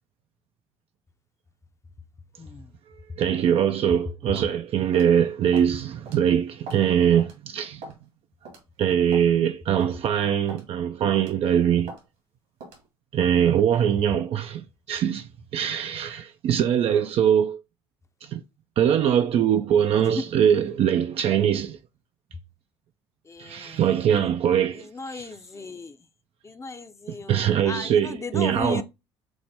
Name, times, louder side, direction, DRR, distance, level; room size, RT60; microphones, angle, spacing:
voice 1, 2.4-2.7 23.3-23.8 24.9-26.0 26.4-28.8, left 4 dB, 25° left, 0.7 m, -36 dB
voice 2, 3.2-7.8 8.8-11.9 13.1-17.6 18.2-18.4 18.8-21.8 23.4-25.4 27.1-28.8, right 9 dB, 50° right, 0.4 m, -22 dB
sound 1, 4.4-4.5 4.9-5.2 5.5-5.7 6.1-6.2 6.7-6.9 7.2-7.3 7.8-8.1 8.5-8.6 9.1-9.3 9.8-10.0 10.5-10.7 11.2-11.4 11.9-12.0 12.6-12.8, right 2 dB, 75° right, 2.0 m, -41 dB
6.1 x 2.1 x 3.4 m
hypercardioid pair, 60°, 13 cm